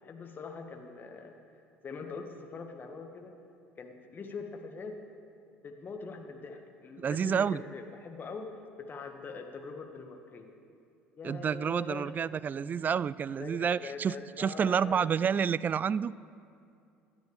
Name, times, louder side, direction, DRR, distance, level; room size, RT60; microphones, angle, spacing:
voice 1, 0.0-1.4 1.8-3.3 3.8-5.0 5.6-10.5 11.1-12.1 13.4-15.1, left 4 dB, 35° left, 3 dB, 1.8 m, -43 dB
voice 2, 7.0-7.6 11.2-16.1, right 7 dB, 30° right, 20 dB, 0.3 m, -29 dB
26.5 x 10.5 x 3.6 m, 2.5 s
figure-of-eight pair, 60°, 6 cm